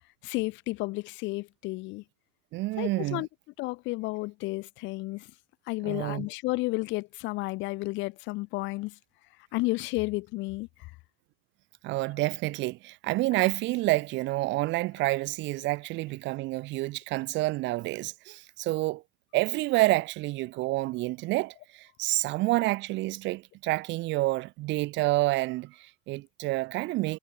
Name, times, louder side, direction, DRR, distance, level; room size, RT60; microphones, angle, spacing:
voice 1, 0.2-2.0 2.8-3.3 3.6-5.3 5.7-8.9 9.5-10.7, left 22 dB, 80° left, 3.2 m, -32 dB
voice 2, 2.5-3.3 5.8-6.3 11.8-19.0 19.3-27.2, right 19 dB, 75° right, 4.0 m, -28 dB
cardioid pair, 145°, 19 cm